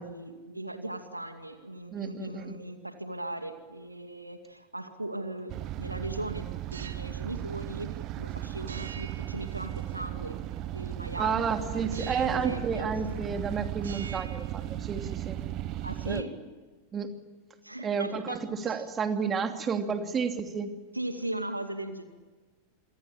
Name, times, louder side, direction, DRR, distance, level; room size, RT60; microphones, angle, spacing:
voice 1, 0.0-5.5 5.8-7.9 8.2-10.4 10.6-12.9 15.8-16.3 17.6-18.4 18.7-18.8 20.9-22.1, right 1 dB, 85° right, 7 dB, 2.3 m, -38 dB
voice 2, 1.9-2.5 11.2-15.4 16.0-16.2 16.9-17.1 17.8-20.7, right 6 dB, 20° right, 6 dB, 2.8 m, -31 dB
sound 1, 5.5-16.2, right 14 dB, 35° right, 1.0 m, -36 dB
sound 2, 6.7-7.2 8.7-10.1 11.9-12.6 12.9-13.5 13.8-15.1, right 6 dB, 70° right, 2.1 m, -47 dB
27.5 x 24.5 x 8.6 m, 1.3 s
figure-of-eight pair, 90°, 0 cm